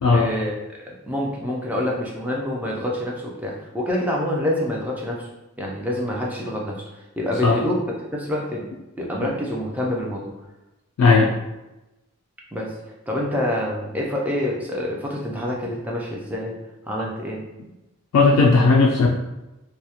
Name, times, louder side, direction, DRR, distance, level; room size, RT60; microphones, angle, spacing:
voice 1, 0.1-5.3 5.6-6.8 7.2-7.8 8.1-8.6 9.0-10.3 12.5-12.7 13.1-16.6 16.9-17.4, left 1 dB, 5° right, -2 dB, 0.3 m, -26 dB
voice 2, 11.0-11.3 18.1-19.1, left 3 dB, 90° left, 1 dB, 0.3 m, -16 dB
2.2 x 2.0 x 2.8 m, 1.0 s
head